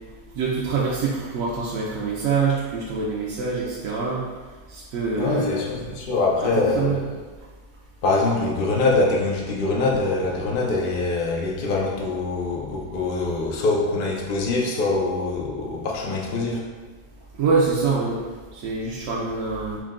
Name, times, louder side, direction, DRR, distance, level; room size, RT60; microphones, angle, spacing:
voice 1, 0.3-4.2 4.7-5.8 6.4-7.0 17.4-18.2 18.5-19.8, right 4 dB, 70° right, -5 dB, 0.9 m, -25 dB
voice 2, 5.1-7.1 8.0-16.6, left 3 dB, 90° left, -2 dB, 0.4 m, -24 dB
4.6 x 2.2 x 3.6 m, 1.4 s
omnidirectional pair, 1.6 m